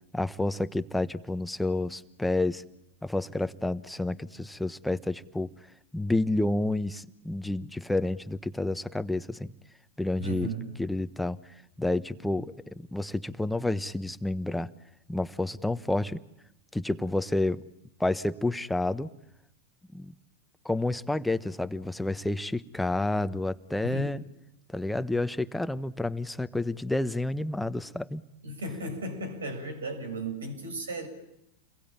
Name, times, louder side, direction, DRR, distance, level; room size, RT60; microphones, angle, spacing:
voice 1, 0.1-2.6 3.0-5.5 5.9-9.5 10.0-10.5 10.8-14.7 15.1-16.2 16.7-17.6 18.0-19.1 19.9-20.1 20.6-24.2 24.7-28.2, left 2 dB, 5° left, 12 dB, 1.2 m, -30 dB
voice 2, 10.2-10.7 23.8-24.1 28.4-31.1, right 2 dB, 85° right, 6 dB, 7.3 m, -35 dB
29.5 x 22.0 x 9.0 m, 0.81 s
hypercardioid pair, 95°, 0 cm